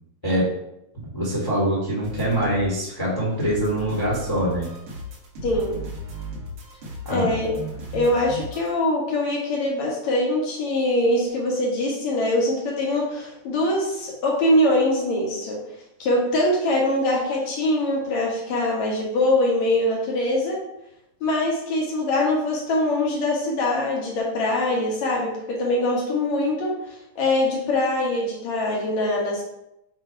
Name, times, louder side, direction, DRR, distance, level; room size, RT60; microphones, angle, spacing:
voice 1, 1.0-4.7 7.0-7.3, equal, 10° left, -8 dB, 1.6 m, -24 dB
sound 1, 2.0-2.7 2.9-8.7, right 1 dB, 65° right, 3.2 m, -35 dB
voice 2, 5.4-5.8 7.1-7.5 7.9-15.6 16.0-20.6 21.2-26.7 27.2-29.4, left 1 dB, 55° left, -3 dB, 2.6 m, -23 dB
8.9 x 3.2 x 4.7 m, 0.85 s
omnidirectional pair, 4.1 m